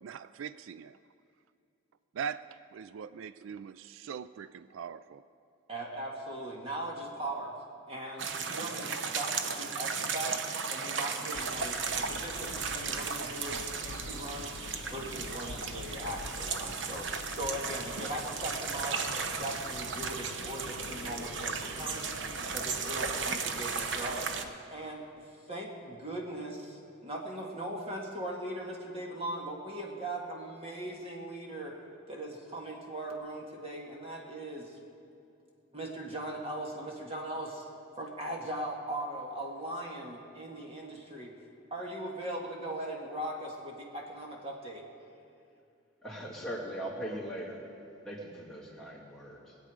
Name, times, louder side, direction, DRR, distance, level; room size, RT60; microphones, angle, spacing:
voice 1, 0.0-1.0 2.1-5.2, right 7 dB, 80° right, 0.3 m, -41 dB
voice 2, 5.7-7.6 7.9-10.4 10.7-14.5 14.9-19.0 19.4-22.1 22.4-24.3 24.7-25.1 25.5-34.8 35.7-37.7 38.0-41.3 41.7-44.8, right 1 dB, 30° right, 1.8 m, -39 dB
sound 1, 8.2-24.4, right 5 dB, 65° right, 0.8 m, -35 dB
sound 2, 11.3-24.5, left 4 dB, 90° left, 0.5 m, -47 dB
voice 3, 46.0-47.6 48.0-49.6, right 1 dB, ahead, 2.6 m, -40 dB
22.0 x 8.2 x 5.0 m
head